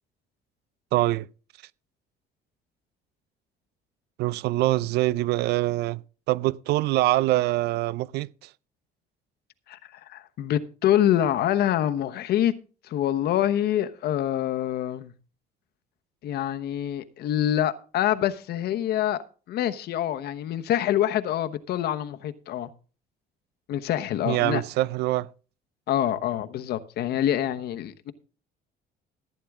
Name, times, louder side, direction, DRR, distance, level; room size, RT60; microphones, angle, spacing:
voice 1, 0.9-1.3 4.2-6.0 6.3-8.3 24.2-25.3, right 17 dB, 75° right, 0.5 m, -24 dB
voice 2, 10.1-12.5 12.9-15.1 16.2-19.2 19.5-22.7 23.7-24.6 25.9-28.1, left 11 dB, 70° left, 1.1 m, -25 dB
15.0 x 9.4 x 3.6 m
cardioid pair, 110°, 17 cm